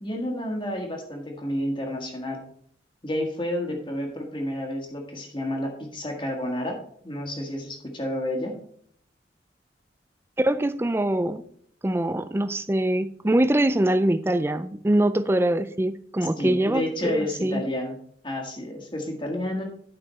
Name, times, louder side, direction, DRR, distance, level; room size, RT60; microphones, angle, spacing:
voice 1, 0.0-2.4 3.0-6.8 7.0-8.5 16.4-18.0 18.2-19.6, left 1 dB, 25° left, 1.7 m, -30 dB
voice 2, 10.4-11.4 11.8-17.6, right 1 dB, 15° right, 0.4 m, -23 dB
11.5 x 5.6 x 4.3 m
head